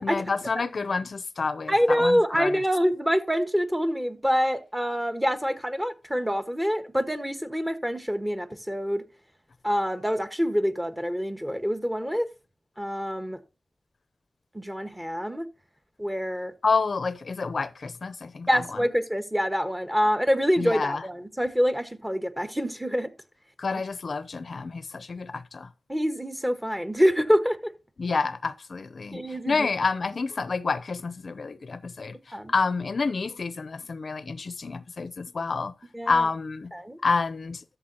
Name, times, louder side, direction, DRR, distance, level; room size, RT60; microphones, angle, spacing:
voice 1, 0.0-2.6 16.6-18.6 20.6-21.0 23.6-25.7 28.0-29.2 29.5-32.2 32.5-35.7 36.1-36.7 37.0-37.6, left 4 dB, 70° left, 0.5 m, -28 dB
voice 2, 1.7-9.0 9.6-12.3 12.8-13.4 14.5-15.5 16.0-16.5 18.5-23.1 25.9-27.7 29.1-29.7 32.3-32.5 35.9-36.3 36.7-37.0, equal, 15° right, 1.4 m, -26 dB
13.0 x 6.8 x 2.8 m
cardioid pair, 50°, 0 cm